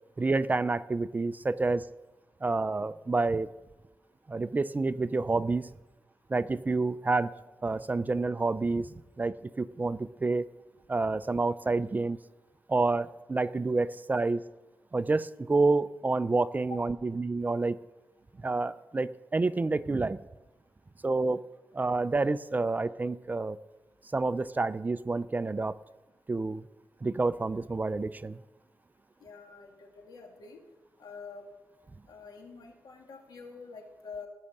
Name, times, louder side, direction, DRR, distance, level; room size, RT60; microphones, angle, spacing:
voice 1, 0.2-1.8 2.4-3.5 4.3-5.7 6.3-7.3 7.6-10.5 10.9-12.2 12.7-14.4 14.9-17.8 18.4-20.2 21.0-21.4 21.7-23.6 24.1-25.7 26.3-26.6 27.0-28.4, right 3 dB, 25° right, 15 dB, 0.4 m, -28 dB
voice 2, 29.2-30.6 31.0-31.5 32.1-34.3, left 4 dB, 85° left, 2 dB, 2.6 m, -46 dB
18.0 x 6.5 x 7.2 m, 1.1 s
wide cardioid pair, 115°, 7 cm